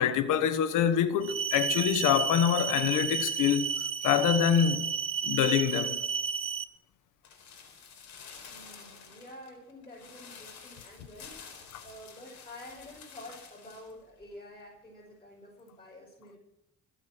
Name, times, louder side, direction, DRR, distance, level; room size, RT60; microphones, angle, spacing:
voice 1, 0.0-3.7 4.0-4.9 5.2-6.0, left 9 dB, 90° left, 1.3 m, -25 dB
sound 1, 1.2-6.6, right 6 dB, 45° right, 0.9 m, -32 dB
sound 2, 7.2-13.9 14.2-14.3, left 6 dB, 70° left, 4.4 m, -50 dB
voice 2, 8.5-16.4, left 1 dB, 15° left, 6.0 m, -49 dB
22.5 x 8.5 x 6.3 m
cardioid pair, 90°, 30 cm